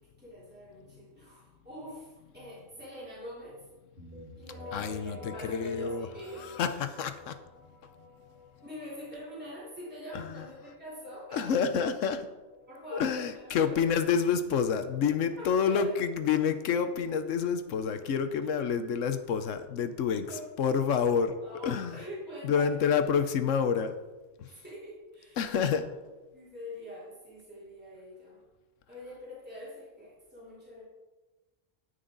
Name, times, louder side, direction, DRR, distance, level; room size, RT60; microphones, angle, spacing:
voice 1, 0.2-3.6 4.4-6.5 8.6-11.5 12.7-13.9 15.3-15.9 20.3-20.4 21.1-22.9 24.6-25.4 25.7-25.9 26.3-28.4 28.9-30.8, equal, 10° right, -9 dB, 3.5 m, -44 dB
sound 1, 4.0-13.6, left 1 dB, 50° right, 3.3 m, -51 dB
voice 2, 4.7-6.1 6.4-7.4 10.1-10.4 11.3-12.3 12.9-20.3 20.6-21.3 21.6-22.0 22.4-23.9 24.4-24.5 25.4-25.9, left 7 dB, 80° left, 10 dB, 1.1 m, -28 dB
9.8 x 9.5 x 3.9 m, 1.2 s
omnidirectional pair, 1.3 m